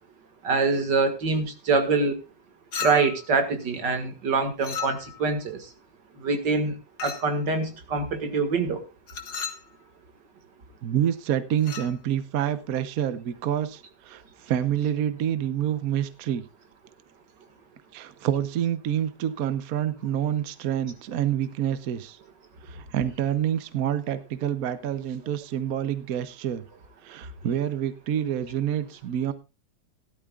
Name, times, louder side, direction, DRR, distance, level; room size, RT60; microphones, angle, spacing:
voice 1, 0.4-2.2 2.8-5.7 6.2-6.8 7.0-8.8, right 4 dB, 85° right, 7 dB, 2.5 m, -25 dB
Chink clink, 2.7-3.3 4.6-5.3 7.0-7.4 9.1-9.7 11.6-11.9, left 6 dB, 65° left, 2.2 m, -34 dB
voice 2, 10.8-16.5 17.9-22.2 22.6-26.6 27.0-29.3, right 10 dB, 60° right, 12 dB, 1.2 m, -27 dB
17.5 x 12.0 x 2.4 m, 0.28 s
omnidirectional pair, 1.9 m